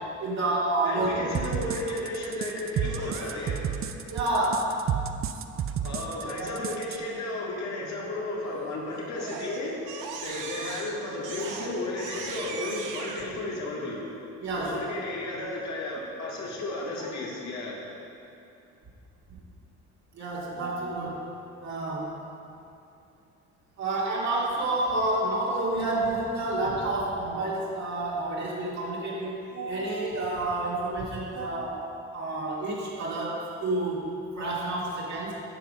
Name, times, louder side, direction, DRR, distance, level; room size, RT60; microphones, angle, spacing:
voice 1, 0.0-1.2 4.1-4.7 6.4-6.5 14.4-14.8 19.3-19.4 20.1-21.2 21.6-22.2 23.8-34.1 34.4-35.3, right 2 dB, 65° right, -6 dB, 2.3 m, -29 dB
voice 2, 0.8-3.6 5.8-9.8 10.2-14.0 14.6-17.8, left 2 dB, 65° left, -3 dB, 2.1 m, -33 dB
sound 1, 1.3-7.0, right 8 dB, 45° right, 0.5 m, -31 dB
Crying sobbing, 2.8-3.8 8.4-8.8 9.1-13.2, right 5 dB, 85° right, 0.9 m, -39 dB
9.0 x 5.9 x 5.5 m, 2.6 s
cardioid pair, 90°, 30 cm